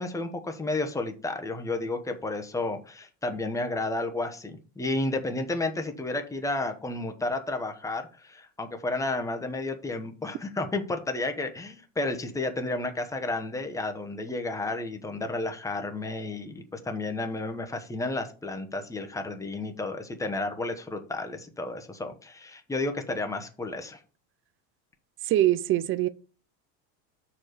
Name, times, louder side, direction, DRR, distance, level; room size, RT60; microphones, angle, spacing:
voice 1, 0.0-24.0, left 2 dB, 5° left, 1.0 m, -32 dB
voice 2, 25.2-26.1, right 14 dB, 30° right, 0.3 m, -23 dB
6.0 x 4.8 x 5.0 m
supercardioid pair, 110°, 49 cm